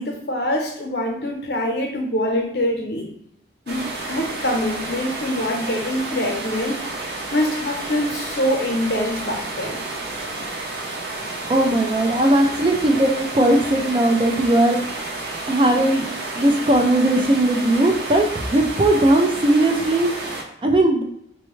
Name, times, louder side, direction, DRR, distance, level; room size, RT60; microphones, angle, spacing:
voice 1, 0.0-3.1 3.7-6.8 7.3-9.8, left 1 dB, 75° left, 2 dB, 0.8 m, -24 dB
sound 1, 3.7-20.4, right 2 dB, 70° right, 0.7 m, -31 dB
voice 2, 11.5-14.8 15.5-16.1 16.4-20.1 20.6-21.0, right 1 dB, 30° right, 3 dB, 0.4 m, -18 dB
4.3 x 2.2 x 3.1 m, 0.74 s
head